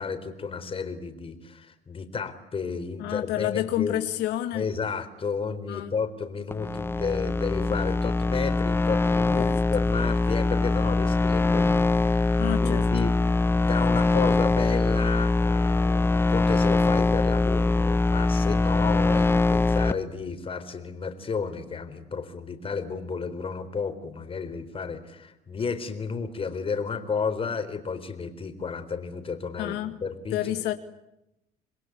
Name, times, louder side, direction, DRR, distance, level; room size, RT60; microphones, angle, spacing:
voice 1, 0.0-4.0 4.5-13.1 13.5-29.8 30.0-30.5, left 5 dB, 35° left, 9 dB, 4.1 m, -32 dB
voice 2, 3.0-4.7 5.7-5.9 9.4-9.6 12.4-12.8 29.6-30.0 30.3-30.7, left 13 dB, 85° left, 7 dB, 2.1 m, -29 dB
sound 1, 6.5-19.9, left 2 dB, 15° left, 1.0 m, -23 dB
28.5 x 21.5 x 9.6 m, 0.89 s
cardioid pair, 110°, 17 cm